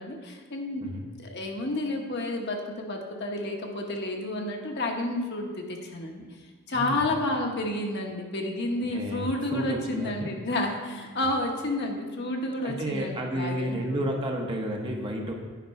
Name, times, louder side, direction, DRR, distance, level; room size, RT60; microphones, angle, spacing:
voice 1, 0.0-0.9 1.2-6.2 6.7-14.0, left 1 dB, 50° left, 2 dB, 1.0 m, -30 dB
voice 2, 8.9-10.3 12.6-15.3, equal, 20° right, 1 dB, 0.8 m, -31 dB
9.3 x 5.3 x 4.6 m, 1.5 s
head